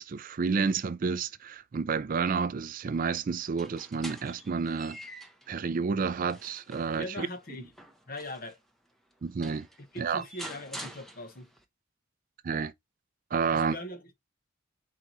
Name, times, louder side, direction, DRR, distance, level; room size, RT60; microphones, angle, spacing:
voice 1, 0.0-5.0 5.5-7.3 9.2-9.7 10.0-10.2 12.4-12.7 13.3-13.8, right 5 dB, 40° right, 0.3 m, -30 dB
sound 1, 3.4-5.5 6.0-8.6 9.1-9.2 9.4-11.6, right 1 dB, ahead, 0.7 m, -46 dB
voice 2, 7.0-7.7 8.1-8.6 9.9-11.5 13.5-14.1, left 1 dB, 45° left, 1.0 m, -40 dB
4.7 x 3.8 x 2.9 m
head